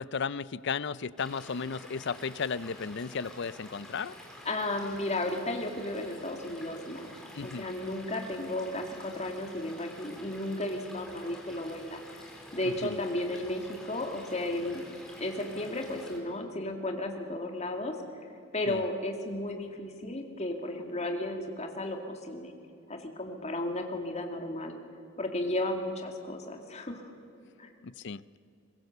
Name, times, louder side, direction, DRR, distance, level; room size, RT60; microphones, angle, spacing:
voice 1, 0.0-4.2 7.3-7.7 12.6-13.0 18.7-18.8 27.8-28.2, left 5 dB, 55° left, 18 dB, 0.5 m, -35 dB
Stream / Liquid, 1.2-16.2, left 1 dB, 5° left, 3.4 m, -49 dB
voice 2, 4.4-7.1 7.4-12.0 12.5-14.9 15.2-18.0 18.5-22.5 22.9-24.8 25.2-27.0 27.6-27.7, left 1 dB, 30° left, 4 dB, 2.3 m, -34 dB
22.5 x 21.5 x 6.8 m, 2.6 s
head